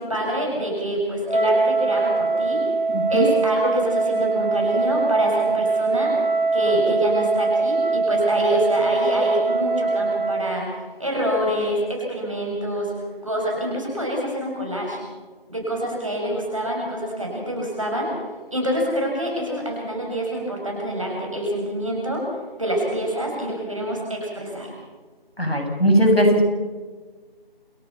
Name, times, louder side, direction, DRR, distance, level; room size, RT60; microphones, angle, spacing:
voice 1, 0.0-2.6 3.1-6.1 6.5-12.9 13.2-15.0 15.5-18.1 18.5-22.2 22.6-24.7, right 1 dB, 35° right, -1 dB, 7.2 m, -26 dB
Wind instrument woodwind instrument, 1.3-10.6, right 3 dB, 55° right, 2.9 m, -22 dB
voice 2, 2.9-3.3 25.4-26.4, equal, 85° left, 3 dB, 7.6 m, -18 dB
28.5 x 20.0 x 5.8 m, 1.4 s
figure-of-eight pair, 175°, 29 cm